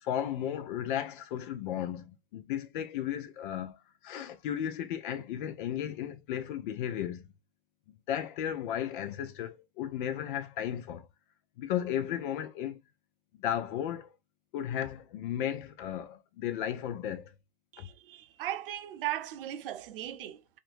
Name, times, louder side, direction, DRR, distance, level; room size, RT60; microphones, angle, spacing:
voice 1, 0.0-3.8 4.0-7.3 8.1-11.1 11.6-12.8 13.3-14.1 14.5-17.3 17.8-17.9, left 10 dB, 50° left, 0.6 m, -34 dB
voice 2, 17.7-20.6, right 13 dB, 60° right, 0.5 m, -38 dB
2.7 x 2.6 x 2.5 m
hypercardioid pair, 110°, 32 cm